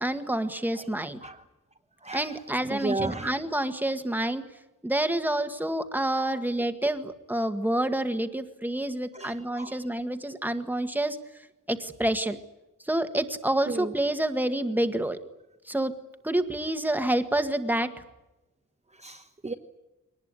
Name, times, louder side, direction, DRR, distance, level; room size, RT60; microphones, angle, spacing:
voice 1, 0.0-1.2 2.1-4.4 4.8-11.2 11.7-12.4 12.9-15.2 15.7-16.0 16.2-17.9, right 1 dB, 5° right, 8 dB, 1.7 m, -28 dB
voice 2, 2.6-3.3 6.2-6.3 9.1-9.8 13.7-13.9 19.0-19.5, right 2 dB, 20° right, 3 dB, 1.3 m, -33 dB
23.0 x 19.5 x 9.8 m, 0.98 s
wide cardioid pair, 160°, 32 cm